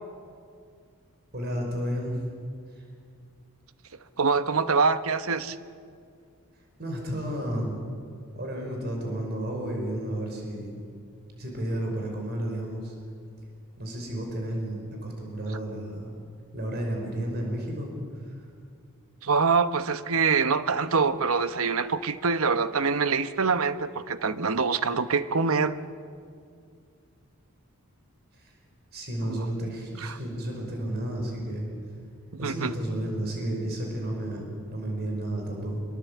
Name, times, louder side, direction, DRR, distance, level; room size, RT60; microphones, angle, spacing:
voice 1, 1.3-2.2 2.7-2.9 6.8-7.8 8.3-10.8 11.4-12.9 13.8-16.1 16.5-17.9 18.3-18.4 28.4-28.5 28.9-31.7 32.4-35.8, right 1 dB, 45° right, 1 dB, 5.5 m, -32 dB
voice 2, 4.2-5.6 19.2-25.8 29.2-29.4 30.0-30.2 32.4-32.7, right 5 dB, 70° right, 12 dB, 0.9 m, -25 dB
26.0 x 22.0 x 8.4 m, 2.2 s
head